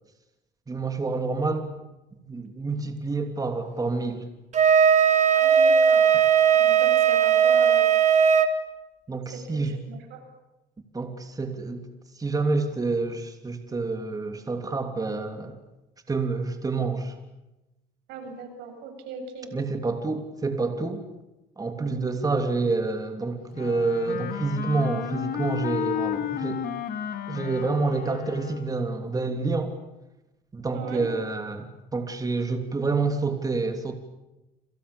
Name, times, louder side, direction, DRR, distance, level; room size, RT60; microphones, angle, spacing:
voice 1, 0.7-1.7 2.1-4.3 6.1-6.2 9.1-9.8 10.9-11.9 12.2-15.6 16.1-17.1 19.5-21.0 21.6-26.6 27.3-29.7 30.5-34.0, right 3 dB, 20° right, 6 dB, 3.1 m, -28 dB
Wind instrument woodwind instrument, 4.5-8.5, right 7 dB, 45° right, 2.6 m, -18 dB
voice 2, 5.4-6.0 6.5-7.9 9.5-10.2 18.1-19.5 21.8-22.0 30.7-31.1, right 5 dB, 90° right, 6 dB, 7.5 m, -38 dB
Wind instrument woodwind instrument 2, 23.5-28.9, left 9 dB, 65° left, 3.1 m, -32 dB
28.0 x 28.0 x 7.0 m, 0.99 s
cardioid pair, 110°, 17 cm